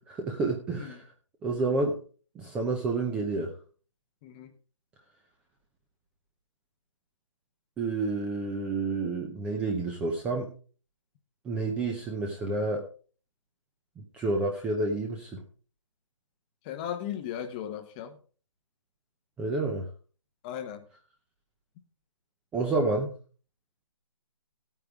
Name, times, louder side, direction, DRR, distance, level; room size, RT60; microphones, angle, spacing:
voice 1, 0.1-1.1 1.4-2.0 2.3-3.5 7.8-10.5 11.4-12.8 14.0-15.4 19.4-19.9 22.5-23.1, right 3 dB, 5° right, 0.7 m, -29 dB
voice 2, 4.2-4.5 16.6-18.2 20.4-20.8, left 9 dB, 15° left, 1.0 m, -36 dB
16.0 x 9.1 x 3.6 m
figure-of-eight pair, 160°, 17 cm